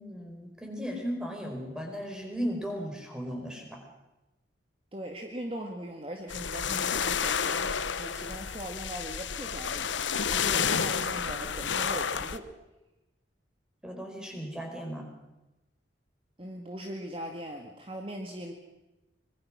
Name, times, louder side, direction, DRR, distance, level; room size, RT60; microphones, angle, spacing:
voice 1, 0.0-3.8 13.8-15.1, equal, 5° right, 2 dB, 5.0 m, -36 dB
voice 2, 4.9-9.9 10.3-12.5 16.4-18.5, right 1 dB, 30° right, 2 dB, 2.0 m, -40 dB
sound 1, 6.3-12.4, left 7 dB, 85° left, 1.1 m, -30 dB
25.0 x 21.5 x 6.3 m, 1.0 s
head